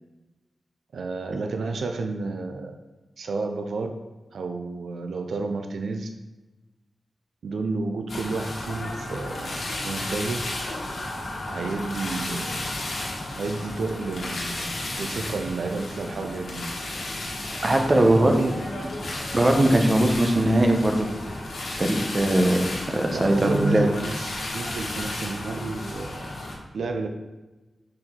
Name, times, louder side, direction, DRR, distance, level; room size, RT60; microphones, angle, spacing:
voice 1, 0.9-2.8 3.2-4.0 4.3-6.1 7.4-9.6 9.8-10.5 11.5-12.6 13.4-14.7 15.0-16.7 18.0-18.6 23.1-26.3 26.7-27.1, right 3 dB, 85° right, 6 dB, 0.4 m, -30 dB
sound 1, 8.1-26.5, left 1 dB, 70° left, 1.4 m, -33 dB
voice 2, 17.6-18.4 19.3-21.1 21.7-23.8, right 1 dB, 30° right, 3 dB, 0.7 m, -20 dB
6.2 x 4.3 x 3.7 m, 1.1 s
wide cardioid pair, 120°, 0 cm